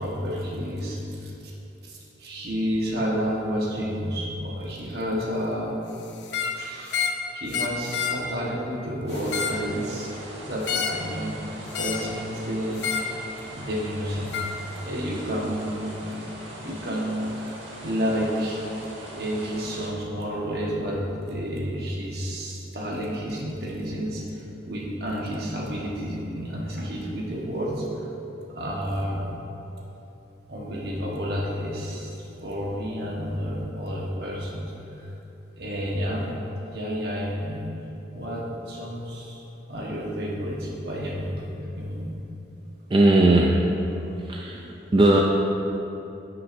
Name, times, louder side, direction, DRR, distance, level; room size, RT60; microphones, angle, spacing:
voice 1, 0.0-1.3 1.8-5.7 6.5-7.0 7.3-10.1 10.4-11.3 11.8-12.8 13.4-16.1 16.5-17.5 17.8-18.6 19.1-21.0 21.3-28.1 28.5-29.3 30.5-35.1 35.6-36.3 36.6-37.6 38.1-39.4 39.7-41.4 41.8-42.1, equal, 55° right, -3 dB, 1.2 m, -30 dB
sound 1, 6.2-6.6 6.9-7.2 7.5-8.2 9.1-9.6 10.6-11.0 11.7-12.1 12.8-13.1 14.3-14.5, left 7 dB, 70° left, 0.6 m, -28 dB
sound 2, 9.1-19.9, right 1 dB, 85° right, 1.6 m, -41 dB
voice 2, 42.9-43.6 44.0-45.2, right 2 dB, 25° right, -2 dB, 0.3 m, -19 dB
11.0 x 5.9 x 2.6 m, 3.0 s
head